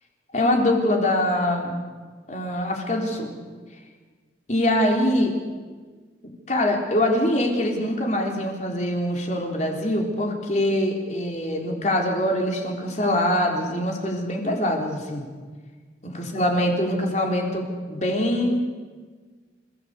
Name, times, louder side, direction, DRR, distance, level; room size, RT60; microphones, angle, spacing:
voice 1, 0.3-1.7 2.3-3.3 4.5-5.3 6.5-15.2 16.0-18.6, left 1 dB, 40° left, 1 dB, 3.8 m, -23 dB
28.0 x 16.0 x 8.2 m, 1.5 s
head